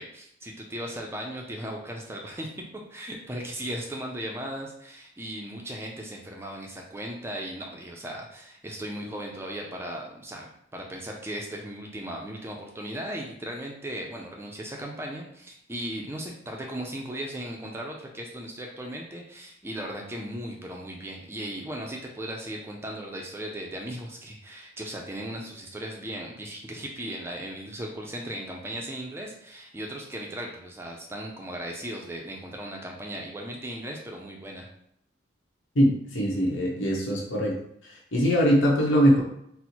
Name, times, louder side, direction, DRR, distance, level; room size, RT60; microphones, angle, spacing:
voice 1, 0.0-2.5 2.9-34.7, right 1 dB, 15° right, 0 dB, 0.3 m, -37 dB
voice 2, 35.7-37.5 38.1-39.2, equal, 90° left, -2 dB, 0.9 m, -22 dB
4.2 x 2.0 x 2.8 m, 0.74 s
head